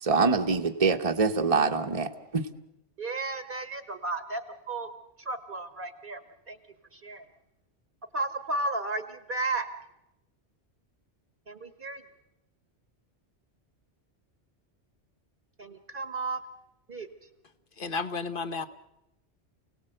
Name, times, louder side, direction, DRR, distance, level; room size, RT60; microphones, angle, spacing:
voice 1, 0.0-2.5, right 4 dB, 30° right, 3 dB, 1.0 m, -25 dB
voice 2, 3.0-4.4 4.7-4.9 5.2-6.2 6.5-6.6 6.9-7.2 8.1-9.7 11.5-12.0 15.6-16.4 16.9-17.1, right 2 dB, 50° right, 10 dB, 1.3 m, -33 dB
voice 3, 17.8-18.7, left 4 dB, 50° left, 10 dB, 1.3 m, -32 dB
29.0 x 18.0 x 7.9 m, 0.91 s
omnidirectional pair, 1.2 m